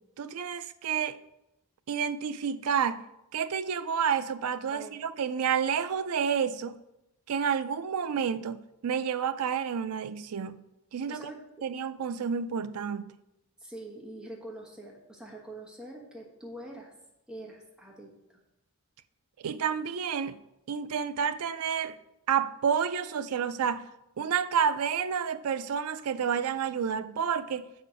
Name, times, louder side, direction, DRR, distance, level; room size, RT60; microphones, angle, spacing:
voice 1, 0.2-1.2 1.9-3.0 3.3-6.8 7.3-10.6 10.9-11.3 11.6-13.0 19.4-20.4 20.7-22.0 22.3-23.9 24.2-27.7, right 7 dB, 85° right, 0.4 m, -30 dB
voice 2, 11.1-11.4 13.6-16.9 17.3-18.4, right 1 dB, 5° right, 1.1 m, -44 dB
7.4 x 4.3 x 4.9 m
head